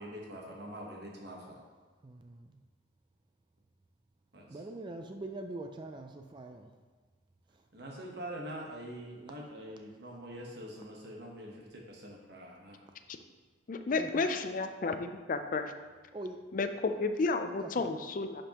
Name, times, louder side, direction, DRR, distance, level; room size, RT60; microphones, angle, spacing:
voice 1, 0.0-1.6 4.3-4.7 7.7-12.8 13.9-14.4, right 1 dB, 55° right, -1 dB, 1.1 m, -45 dB
voice 2, 2.0-2.5 4.5-6.7 14.0-14.3 16.1-16.4 17.6-17.9, right 2 dB, 25° right, 5 dB, 0.3 m, -43 dB
voice 3, 13.7-15.7 16.5-18.4, left 3 dB, 45° left, 8 dB, 0.4 m, -32 dB
10.5 x 5.1 x 2.9 m, 1.4 s
head